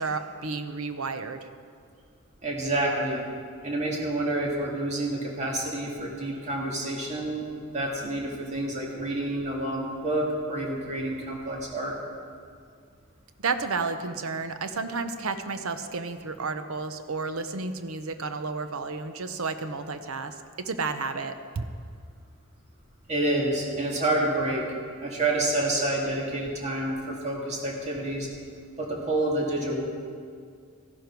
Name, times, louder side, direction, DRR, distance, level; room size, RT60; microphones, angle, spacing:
voice 1, 0.0-1.4 13.4-21.6, right 4 dB, 75° right, 9 dB, 0.7 m, -32 dB
voice 2, 2.4-3.2 3.6-7.4 7.7-11.9 23.1-24.6 25.0-28.3 28.8-29.9, right 1 dB, 30° right, -2 dB, 2.1 m, -28 dB
14.0 x 12.0 x 4.6 m, 2.2 s
head